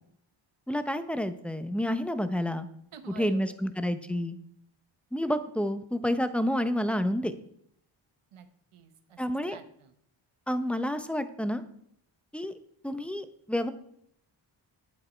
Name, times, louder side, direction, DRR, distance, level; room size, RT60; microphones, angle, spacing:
voice 1, 0.7-2.7 3.2-4.4 5.1-7.3 9.2-9.6 10.5-11.6 12.3-12.5 12.8-13.7, equal, ahead, 10 dB, 0.9 m, -29 dB
voice 2, 2.9-3.6 8.3-9.9, right 7 dB, 80° right, 9 dB, 1.2 m, -49 dB
8.6 x 7.9 x 4.5 m, 0.69 s
cardioid pair, 60°, 50 cm